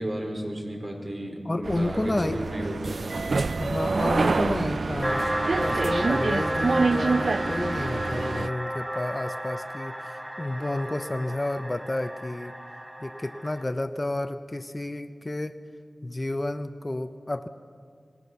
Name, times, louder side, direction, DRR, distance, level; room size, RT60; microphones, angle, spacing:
voice 1, 0.0-3.2, right 1 dB, 50° right, 1 dB, 4.8 m, -33 dB
voice 2, 1.4-2.4 3.6-5.3 5.6-12.6 13.0-15.6 16.0-17.5, left 1 dB, 30° left, 10 dB, 0.9 m, -31 dB
sound 1, 1.6-8.5, right 3 dB, 70° right, 0.5 m, -27 dB
sound 2, 5.0-13.6, equal, 15° right, 1.6 m, -32 dB
25.0 x 19.5 x 6.9 m, 2.2 s
cardioid pair, 50°, 0 cm